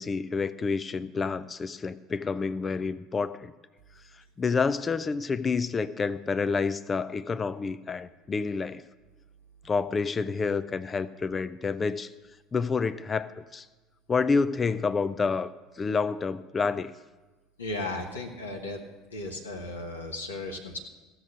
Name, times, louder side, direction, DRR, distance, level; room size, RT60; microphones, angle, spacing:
voice 1, 0.0-3.5 4.4-8.8 9.6-12.1 12.5-13.7 14.1-15.5 15.8-16.9, left 4 dB, 25° left, 15 dB, 0.5 m, -28 dB
voice 2, 17.6-18.8 19.1-20.8, left 2 dB, 85° left, 1 dB, 1.2 m, -35 dB
15.5 x 6.4 x 6.4 m, 1.2 s
figure-of-eight pair, 65°, 0 cm